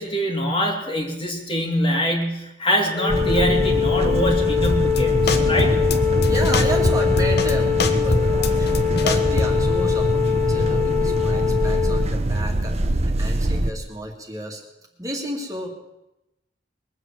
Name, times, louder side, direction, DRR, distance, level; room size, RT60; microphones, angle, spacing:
voice 1, 0.0-5.8, equal, 30° left, 1 dB, 2.6 m, -24 dB
Wind instrument woodwind instrument, 2.9-12.1, left 10 dB, 5° left, 1.3 m, -23 dB
sound 1, 3.1-13.7, right 1 dB, 40° right, 0.9 m, -23 dB
sound 2, 4.6-5.0 5.3-6.0 6.2-7.5 7.8-9.7, left 2 dB, 65° left, 1.2 m, -24 dB
voice 2, 6.3-14.6 15.0-15.7, right 1 dB, 20° right, 0 dB, 2.1 m, -31 dB
21.5 x 8.2 x 7.4 m, 0.92 s
head